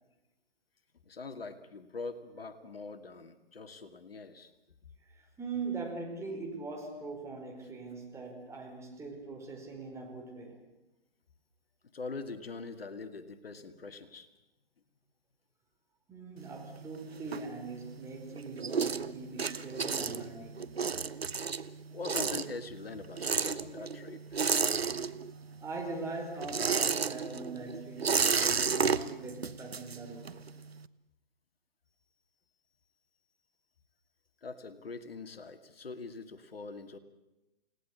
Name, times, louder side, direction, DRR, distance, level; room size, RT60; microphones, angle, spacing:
voice 1, 1.1-4.5 11.9-14.3 21.9-24.4 34.4-37.0, left 4 dB, 75° left, 8 dB, 2.3 m, -43 dB
voice 2, 5.1-10.6 16.1-20.6 23.6-23.7 25.2-30.4, right 3 dB, 10° right, 1 dB, 4.8 m, -41 dB
sound 1, 16.4-18.0 18.3-25.5 25.8-30.5, right 5 dB, 80° right, 1.1 m, -32 dB
29.0 x 18.5 x 8.5 m, 0.96 s
figure-of-eight pair, 135°, 30 cm